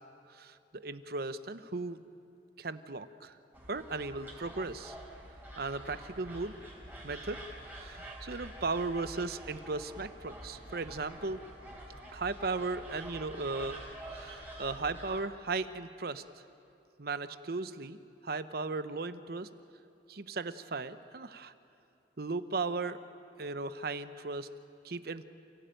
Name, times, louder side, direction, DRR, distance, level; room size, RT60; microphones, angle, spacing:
voice 1, 0.3-2.0 2.6-3.4 3.7-4.9 5.6-6.5 7.0-7.4 7.7-11.4 12.1-13.8 14.1-16.2 17.0-18.0 18.2-19.5 20.1-21.5 22.2-23.0 23.4-24.5 24.8-25.3, right 3 dB, 60° right, 12 dB, 0.9 m, -36 dB
sound 1, 3.5-15.2, right 1 dB, 10° right, 4.2 m, -47 dB
28.5 x 17.0 x 9.0 m, 2.5 s
head